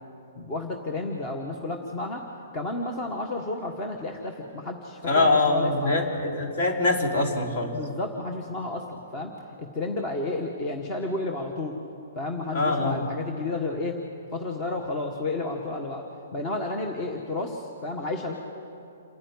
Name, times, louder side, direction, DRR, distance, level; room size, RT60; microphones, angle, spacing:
voice 1, 0.3-2.3 2.5-6.1 7.7-11.8 12.1-14.0 14.3-16.0 16.3-18.3, left 2 dB, 25° left, 3 dB, 1.6 m, -31 dB
voice 2, 5.1-7.7 12.5-13.0, left 2 dB, 55° left, 1 dB, 3.8 m, -23 dB
28.5 x 9.9 x 9.7 m, 2.7 s
hypercardioid pair, 155°, 0 cm